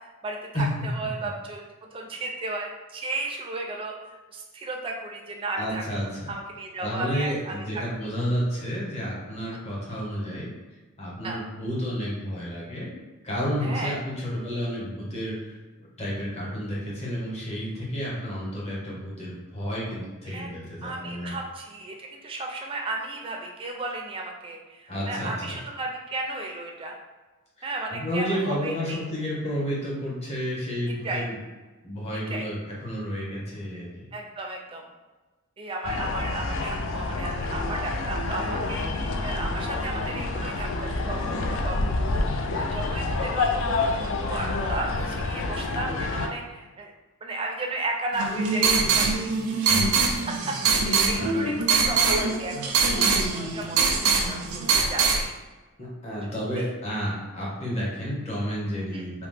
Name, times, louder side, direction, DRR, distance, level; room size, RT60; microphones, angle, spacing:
voice 1, 0.0-5.8 6.3-7.8 11.2-11.4 13.6-14.0 20.3-20.5 20.8-26.9 27.6-29.0 31.0-31.2 32.3-32.5 34.1-34.9 35.6-46.9 47.2-49.3 49.7-55.3 56.6-56.7 58.9-59.0, right 2 dB, 25° right, 1 dB, 0.4 m, -34 dB
voice 2, 5.6-6.3 6.8-10.5 11.0-13.0 13.2-15.6 16.0-21.3 24.9-25.6 27.9-31.3 31.8-34.1 49.7-50.1 51.1-51.5 55.8-59.3, equal, 30° left, -5 dB, 0.9 m, -31 dB
sound 1, 35.8-46.3, left 3 dB, 60° left, 0.3 m, -28 dB
sound 2, 48.1-55.2, right 5 dB, 85° right, 0.5 m, -23 dB
2.9 x 2.1 x 3.3 m, 1.2 s
head